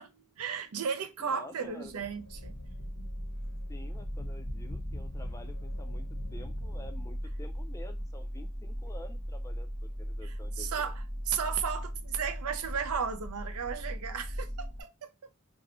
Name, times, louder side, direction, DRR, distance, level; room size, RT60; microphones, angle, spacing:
voice 1, 0.0-2.6 10.2-11.0 11.3-15.1, right 7 dB, 80° right, 0.5 m, -35 dB
voice 2, 1.2-2.0 3.7-10.9, left 1 dB, 15° left, 0.4 m, -49 dB
sound 1, 1.6-7.7, left 1 dB, 90° left, 0.8 m, -46 dB
sound 2, 2.3-14.8, equal, 45° right, 0.8 m, -38 dB
3.0 x 2.7 x 2.9 m
head